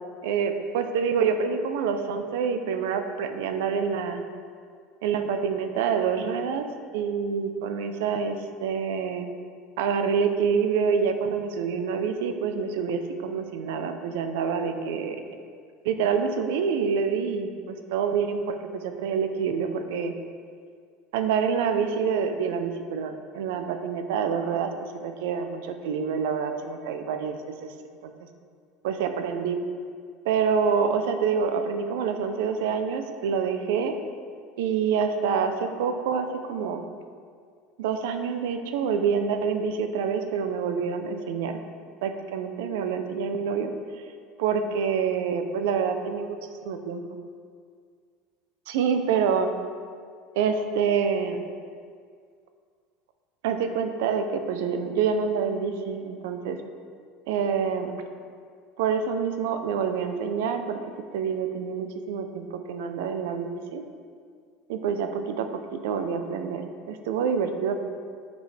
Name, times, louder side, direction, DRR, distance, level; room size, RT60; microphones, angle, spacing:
voice 1, 0.2-4.2 5.0-6.6 6.9-8.4 8.6-9.3 9.8-15.2 15.8-20.1 21.1-24.7 25.0-27.7 28.0-28.1 28.8-29.6 30.2-33.9 34.6-36.8 37.8-41.6 42.0-43.7 44.4-46.3 46.7-47.0 48.7-49.5 50.3-51.4 53.4-56.6 57.3-57.9 58.8-60.8 61.1-63.8 64.7-67.8, right 6 dB, 80° right, 7 dB, 0.6 m, -27 dB
9.0 x 5.4 x 3.4 m, 2.1 s
cardioid pair, 170°, 0 cm